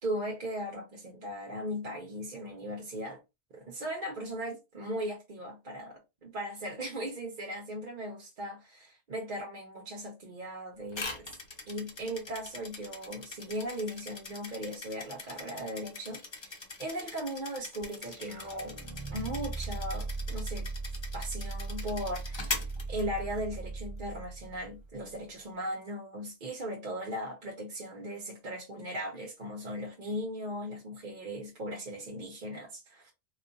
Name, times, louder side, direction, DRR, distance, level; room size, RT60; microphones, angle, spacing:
voice 1, 0.0-3.2 3.5-11.3 11.7-18.8 19.1-20.7 21.1-33.1, equal, 45° right, 0.8 m, -38 dB
sound 1, 10.9-23.6, left 3 dB, 35° left, 0.4 m, -42 dB
sound 2, 17.8-25.1, right 3 dB, 15° right, 1.2 m, -38 dB
4.0 x 2.3 x 2.6 m
omnidirectional pair, 1.3 m